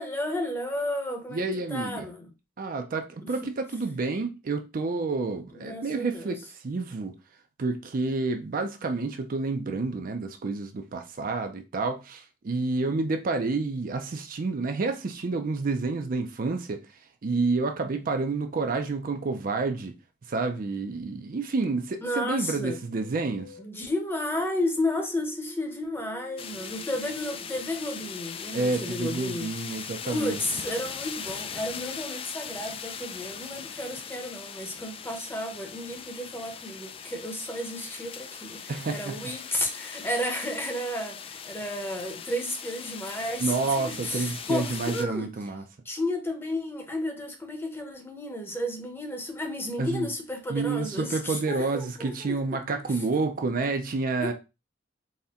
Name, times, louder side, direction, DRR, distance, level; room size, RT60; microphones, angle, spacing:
voice 1, 0.0-1.4 1.7-2.3 3.2-3.3 5.6-6.4 22.0-22.8 23.6-29.5 30.0-45.3 45.8-53.0 54.2-54.3, left 1 dB, 10° left, 0.8 m, -32 dB
voice 2, 1.3-2.1 2.6-6.4 6.6-7.1 7.6-16.8 17.2-19.9 20.3-23.5 28.5-30.4 38.7-39.2 43.4-45.6 49.8-50.1 50.5-54.3, right 3 dB, 50° right, 0.5 m, -29 dB
sound 1, 22.7-30.1, right 1 dB, 65° left, 2.1 m, -50 dB
sound 2, 26.4-45.0, left 7 dB, 30° left, 0.3 m, -40 dB
4.2 x 2.2 x 3.6 m
head